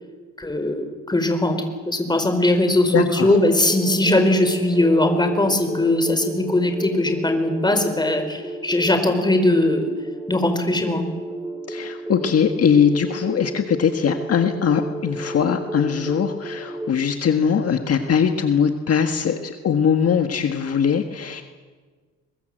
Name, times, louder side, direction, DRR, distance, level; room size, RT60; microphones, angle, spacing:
voice 1, 0.4-9.9 10.3-11.1, left 1 dB, 15° left, 7 dB, 4.5 m, -20 dB
voice 2, 2.9-3.4 11.7-21.4, left 7 dB, 50° left, 6 dB, 1.6 m, -21 dB
sound 1, 3.2-16.9, right 1 dB, 5° right, 2.7 m, -33 dB
23.0 x 21.5 x 7.9 m, 1.5 s
cardioid pair, 90°, 30 cm